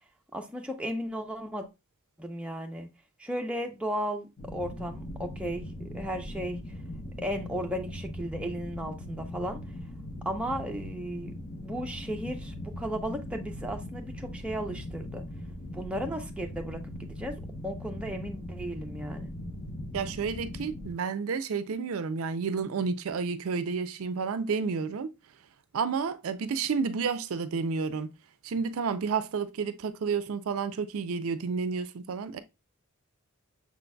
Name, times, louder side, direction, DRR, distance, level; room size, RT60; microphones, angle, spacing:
voice 1, 0.3-1.7 2.2-2.9 3.2-6.6 7.2-9.6 10.2-11.3 11.6-15.2 15.7-17.3 17.6-19.3, equal, 5° right, 0.6 m, -35 dB
sound 1, 4.4-20.9, left 1 dB, 45° left, 1.0 m, -40 dB
voice 2, 19.9-25.1 25.7-28.1 28.4-32.4, right 5 dB, 70° right, 0.4 m, -30 dB
6.2 x 3.9 x 2.2 m
head